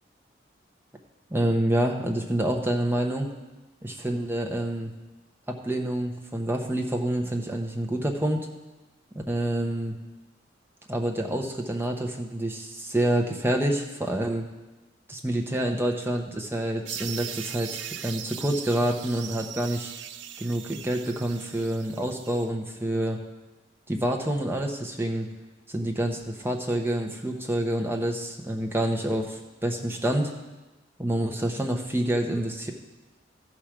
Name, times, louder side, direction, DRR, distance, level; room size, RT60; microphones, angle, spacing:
voice 1, 1.3-3.3 3.8-4.9 5.5-8.5 9.3-10.0 10.9-14.4 15.1-19.9 20.4-23.2 23.9-25.3 25.7-30.3 31.0-32.7, right 1 dB, 10° right, 1 dB, 0.9 m, -27 dB
sound 1, 16.8-22.5, right 9 dB, 85° right, 0.5 m, -39 dB
14.0 x 5.0 x 6.0 m, 1.1 s
head